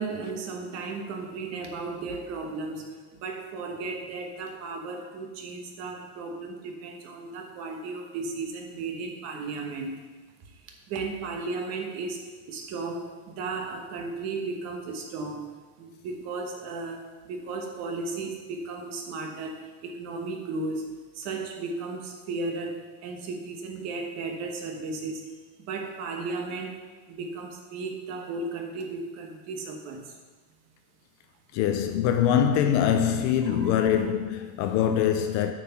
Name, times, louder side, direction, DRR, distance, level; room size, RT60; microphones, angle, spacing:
voice 1, 0.0-10.0 10.4-15.5 15.8-25.3 25.6-30.2 33.4-33.9, right 3 dB, 40° right, 1.3 m, -35 dB
voice 2, 31.5-35.5, left 9 dB, 45° left, 0.6 m, -23 dB
8.4 x 5.8 x 5.8 m
cardioid pair, 175°, 41 cm